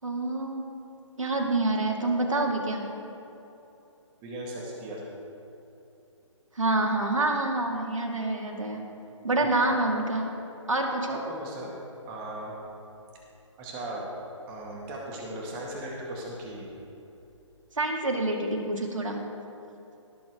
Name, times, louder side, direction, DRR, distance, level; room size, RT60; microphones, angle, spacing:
voice 1, 0.0-0.7 1.2-2.8 6.6-8.8 9.2-10.3 10.7-11.2 17.8-19.2, right 2 dB, 80° right, 1 dB, 2.0 m, -27 dB
voice 2, 4.2-5.0 11.1-11.7 12.0-12.5 13.6-14.0 14.5-16.7, right 1 dB, 20° right, -2 dB, 2.0 m, -37 dB
18.0 x 7.7 x 3.6 m, 2.9 s
figure-of-eight pair, 140°, 16 cm